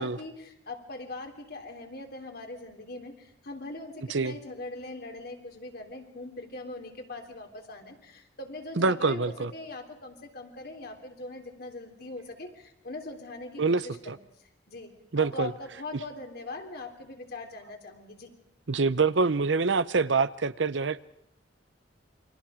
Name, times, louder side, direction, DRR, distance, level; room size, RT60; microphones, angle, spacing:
voice 1, 0.0-14.2 14.7-18.3, left 2 dB, 60° left, 3 dB, 3.4 m, -41 dB
voice 2, 8.8-9.5 13.6-13.8 14.1-14.2 15.1-15.5 18.7-21.0, right 4 dB, 90° right, 15 dB, 0.8 m, -25 dB
29.5 x 24.0 x 5.0 m, 0.73 s
head